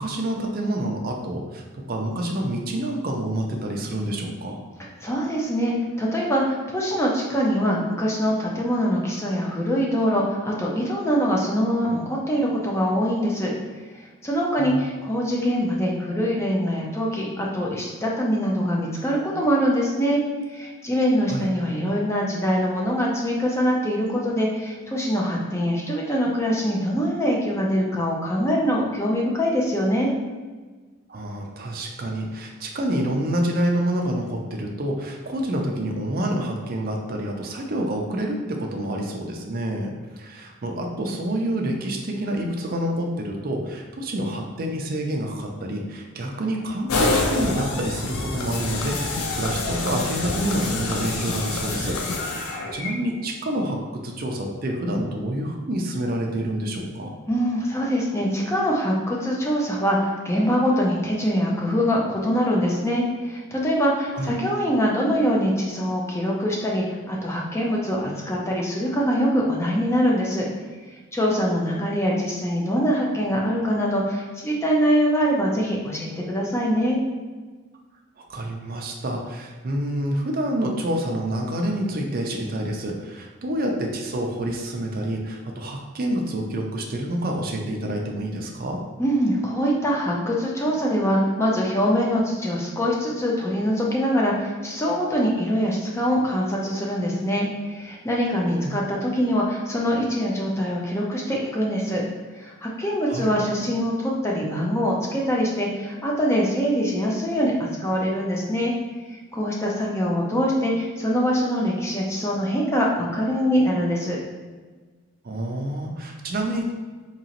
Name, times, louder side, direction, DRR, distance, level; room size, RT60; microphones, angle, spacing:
voice 1, 0.0-4.6 14.6-14.8 21.3-21.5 31.1-52.0 52.3-57.1 64.1-64.3 78.2-88.8 98.5-98.7 103.1-103.3 115.2-116.7, right 1 dB, 45° right, 1 dB, 0.4 m, -28 dB
voice 2, 5.0-13.5 14.0-20.2 20.5-30.1 57.3-70.5 71.1-77.0 89.0-102.0 102.3-108.7 109.3-114.2, equal, 15° left, -3 dB, 0.5 m, -23 dB
sound 1, 46.9-52.9, left 3 dB, 85° left, 0.5 m, -27 dB
3.8 x 2.9 x 2.9 m, 1.4 s
head